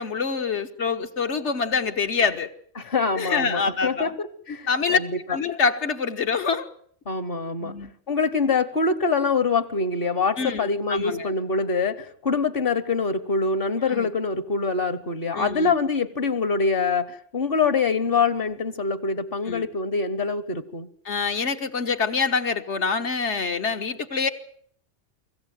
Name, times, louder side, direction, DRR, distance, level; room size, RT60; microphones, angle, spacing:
voice 1, 0.0-2.5 3.1-4.1 4.7-5.0 5.3-6.7 7.6-7.9 10.4-11.3 13.9-14.1 15.3-15.7 19.5-19.7 21.0-24.3, left 5 dB, 75° left, 8 dB, 1.7 m, -25 dB
voice 2, 2.8-5.1 7.1-7.8 8.1-20.9, left 4 dB, 55° left, 15 dB, 1.3 m, -25 dB
24.5 x 15.0 x 9.3 m, 0.62 s
omnidirectional pair, 1.2 m